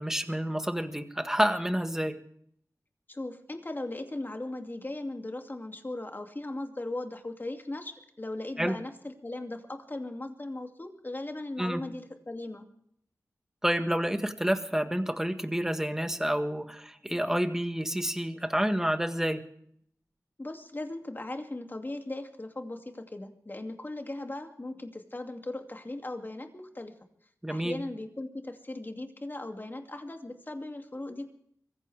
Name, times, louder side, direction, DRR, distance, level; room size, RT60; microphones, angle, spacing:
voice 1, 0.0-2.2 8.6-8.8 11.6-11.8 13.6-19.4 27.4-27.8, equal, 5° right, 8 dB, 1.6 m, -29 dB
voice 2, 3.1-12.7 20.4-26.9 27.5-31.3, left 2 dB, 35° left, 5 dB, 2.5 m, -38 dB
24.0 x 15.0 x 3.5 m, 0.68 s
cardioid pair, 55°, 6 cm